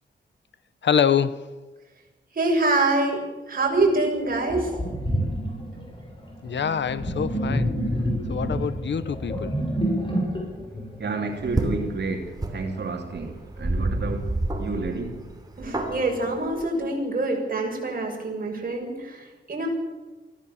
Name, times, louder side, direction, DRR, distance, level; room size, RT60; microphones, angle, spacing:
voice 1, 0.8-1.5 6.4-7.7 8.3-9.5, left 7 dB, 75° left, 1.0 m, -25 dB
voice 2, 2.3-3.2 3.5-4.7 15.6-19.7, right 2 dB, 50° right, 6.8 m, -25 dB
Sink (filling or washing), 3.8-3.9 4.5-11.8, equal, 25° left, 6.6 m, -28 dB
voice 3, 11.0-15.3, right 3 dB, 65° right, 3.0 m, -31 dB
sound 1, 11.4-16.7, right 1 dB, 20° right, 3.4 m, -30 dB
23.5 x 16.0 x 7.2 m
wide cardioid pair, 110°, 19 cm